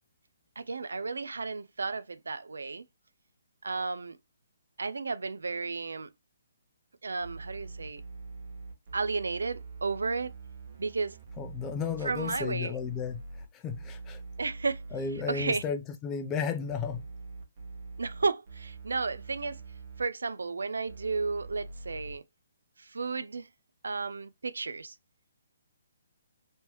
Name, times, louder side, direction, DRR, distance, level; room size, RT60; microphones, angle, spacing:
voice 1, 0.6-2.8 3.6-4.2 4.8-6.1 7.0-8.0 8.9-10.3 10.8-11.2 12.0-12.8 14.4-14.8 15.3-15.6 18.0-19.6 20.0-22.2 22.8-23.5 23.8-24.9, right 4 dB, 85° right, 0.3 m, -33 dB
sound 1, 7.2-15.6 16.7-20.0 20.9-22.2, right 3 dB, 50° right, 1.1 m, -44 dB
voice 2, 11.4-14.2 14.9-17.1, left 6 dB, 20° left, 0.5 m, -34 dB
3.1 x 2.9 x 2.9 m
hypercardioid pair, 150°, 0 cm